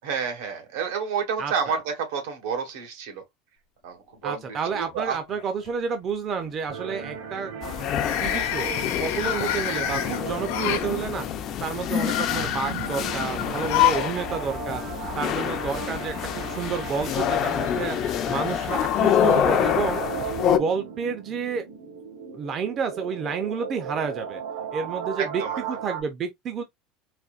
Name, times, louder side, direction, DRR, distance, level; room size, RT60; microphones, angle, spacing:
voice 1, 0.0-3.2 3.8-5.2 25.2-25.5, right 6 dB, 85° right, 1.4 m, -30 dB
voice 2, 1.4-1.8 4.2-7.9 8.2-11.3 11.6-14.8 15.2-18.0 18.3-20.0 20.5-21.6 22.3-24.4 24.7-26.6, right 6 dB, 30° right, 0.5 m, -30 dB
sound 1, 4.3-4.9 5.3-5.7 7.8-10.9 11.7-14.1 14.4-14.5 15.6-15.7, left 12 dB, 70° left, 0.8 m, -28 dB
sound 2, 6.7-26.0, right 5 dB, 60° right, 1.4 m, -36 dB
sound 3, 7.6-20.6, left 10 dB, 35° left, 0.4 m, -27 dB
4.2 x 2.6 x 2.4 m
cardioid pair, 165°, 0 cm